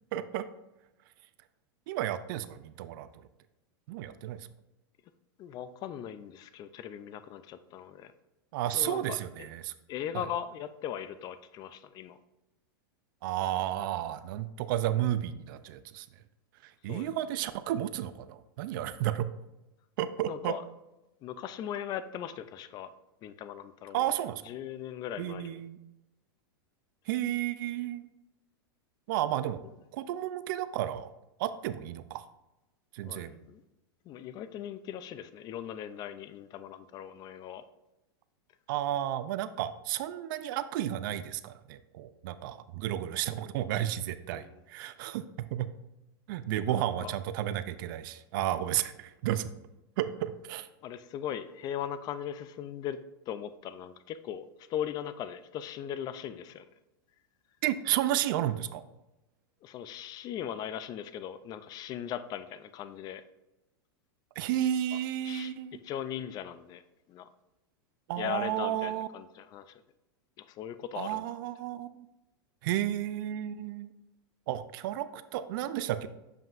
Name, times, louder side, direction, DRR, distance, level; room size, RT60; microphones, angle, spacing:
voice 1, 0.1-0.5 1.9-3.1 3.9-4.5 8.5-9.7 10.1-10.3 13.2-16.1 16.8-19.3 20.0-20.6 23.9-24.4 25.2-25.8 27.1-28.1 29.1-29.6 29.9-31.1 31.4-32.3 32.9-33.3 38.7-45.2 45.5-45.7 46.3-49.5 50.0-50.7 57.6-58.8 64.4-65.8 68.1-69.1 71.0-72.1 72.6-73.9 74.5-76.1, right 12 dB, 60° right, 13 dB, 0.4 m, -32 dB
voice 2, 5.4-8.1 8.7-9.5 9.9-12.2 16.9-17.1 20.3-20.6 21.2-22.9 23.2-24.1 24.4-25.6 33.0-33.6 34.1-37.6 44.3-44.5 46.7-47.1 50.8-53.0 53.3-56.6 59.6-63.2 65.2-65.5 65.8-66.8 67.1-67.3 68.2-69.8 70.4-71.3, left 10 dB, 35° left, 13 dB, 0.4 m, -39 dB
7.2 x 5.5 x 2.5 m, 0.97 s
hypercardioid pair, 120°, 12 cm